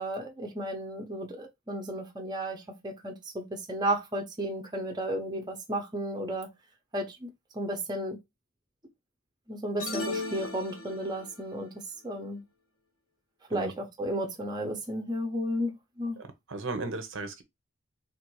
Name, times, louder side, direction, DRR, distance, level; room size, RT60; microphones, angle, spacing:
voice 1, 0.0-6.5 6.9-7.3 7.5-8.2 9.5-11.7 12.0-12.4 13.5-16.2, right 1 dB, 20° right, 0.7 m, -33 dB
sound 1, 9.8-11.3, left 2 dB, 80° left, 1.2 m, -36 dB
voice 2, 16.2-17.4, right 3 dB, 60° right, 0.7 m, -36 dB
3.6 x 2.6 x 4.6 m
head